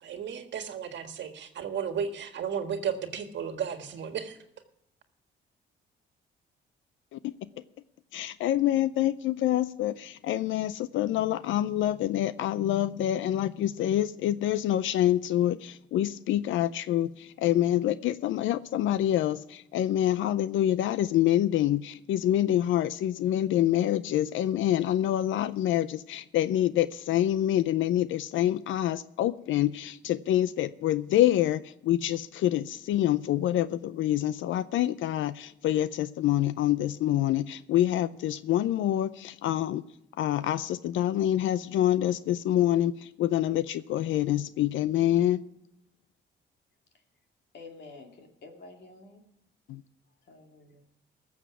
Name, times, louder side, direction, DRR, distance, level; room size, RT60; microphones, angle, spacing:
voice 1, 0.0-4.4, right 7 dB, 65° right, 7 dB, 1.7 m, -34 dB
voice 2, 8.1-39.8 40.2-45.4 49.7-49.8, left 12 dB, 75° left, 16 dB, 0.5 m, -26 dB
voice 3, 47.5-49.2 50.3-50.8, left 3 dB, 60° left, 3 dB, 2.6 m, -49 dB
19.0 x 7.2 x 6.1 m, 0.77 s
cardioid pair, 90°, 20 cm